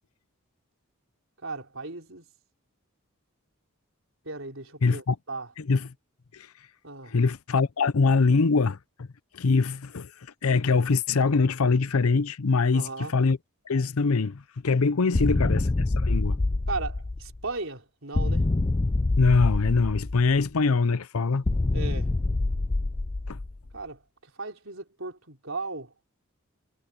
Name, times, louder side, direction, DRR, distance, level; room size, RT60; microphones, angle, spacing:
voice 1, 1.4-2.2 4.2-5.5 6.8-7.1 12.7-13.1 15.2-15.4 16.7-18.5 21.7-22.1 23.7-24.0 24.4-25.9, right 3 dB, 65° right, 4.4 m, -36 dB
voice 2, 4.8-5.2 5.6-5.9 6.3-6.5 7.1-9.1 9.3-10.1 10.4-13.4 13.7-16.4 19.2-21.5 23.3-23.4, left 4 dB, 85° left, 0.7 m, -23 dB
sound 1, 15.1-17.4 18.1-20.4 21.5-23.7, left 2 dB, 25° left, 0.4 m, -26 dB
head